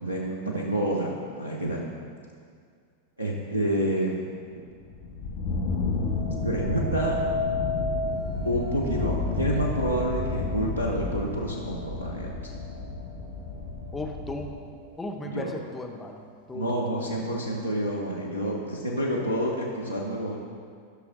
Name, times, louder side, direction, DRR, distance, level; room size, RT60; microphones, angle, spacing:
voice 1, 0.0-1.9 3.2-4.6 6.4-7.2 8.4-12.3 15.2-15.5 16.5-20.4, right 1 dB, 85° right, -2 dB, 0.8 m, -28 dB
sound 1, 4.8-14.5, left 3 dB, 50° left, 1.0 m, -31 dB
sound 2, 6.0-15.2 15.7-16.2, left 2 dB, 55° right, 1.9 m, -36 dB
voice 2, 13.9-14.5 15.0-16.2 16.5-16.8, left 2 dB, 10° left, 2 dB, 0.8 m, -35 dB
13.0 x 6.1 x 2.6 m, 2.1 s
figure-of-eight pair, 90°, 0 cm